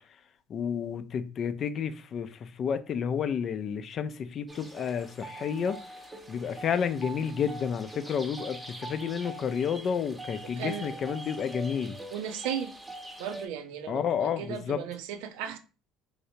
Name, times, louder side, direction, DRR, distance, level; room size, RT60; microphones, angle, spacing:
voice 1, 0.5-5.8 6.3-12.0 13.9-14.8, left 7 dB, 45° left, 0.4 m, -31 dB
sound 1, 4.5-13.5, right 1 dB, 10° right, 0.8 m, -43 dB
voice 2, 10.4-11.0 12.1-12.7 13.2-15.6, right 9 dB, 80° right, 0.5 m, -36 dB
3.2 x 2.7 x 2.7 m
supercardioid pair, 90°, 0 cm